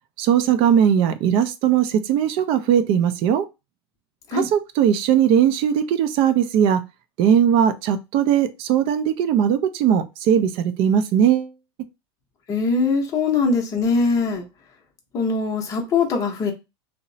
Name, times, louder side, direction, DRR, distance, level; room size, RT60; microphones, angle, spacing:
voice 1, 0.2-3.5 4.3-6.8 7.2-11.5, right 9 dB, 40° right, 0.4 m, -19 dB
voice 2, 12.5-14.5 15.1-16.5, left 4 dB, 25° left, 0.7 m, -21 dB
2.9 x 2.0 x 2.6 m
supercardioid pair, 130°, 14 cm